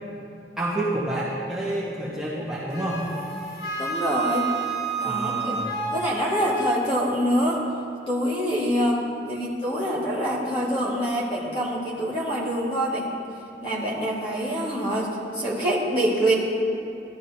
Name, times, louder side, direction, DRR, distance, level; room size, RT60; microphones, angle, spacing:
voice 1, 0.6-3.0 5.0-5.7, right 1 dB, 5° right, -9 dB, 1.5 m, -29 dB
Wind instrument woodwind instrument, 2.7-6.8, right 4 dB, 60° left, 1.2 m, -30 dB
voice 2, 3.8-4.5 5.0-5.6 5.9-7.6 8.1-9.0 9.3-13.1 13.6-16.3, equal, 30° left, -5 dB, 2.0 m, -25 dB
15.0 x 11.0 x 2.8 m, 2.6 s
head